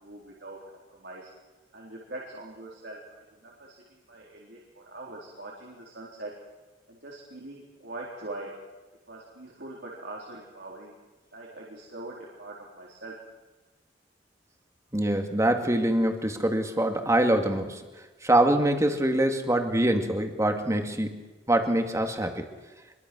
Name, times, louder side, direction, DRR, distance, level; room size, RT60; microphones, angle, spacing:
voice 1, 0.0-0.6 1.0-1.3 1.7-3.8 4.1-6.3 6.9-8.5 9.1-10.9 11.3-13.1, right 2 dB, 70° right, -3 dB, 4.2 m, -42 dB
voice 2, 14.9-17.8 18.2-21.2 21.5-22.5, right 1 dB, 15° right, 5 dB, 2.3 m, -24 dB
25.5 x 23.0 x 6.3 m, 1.2 s
head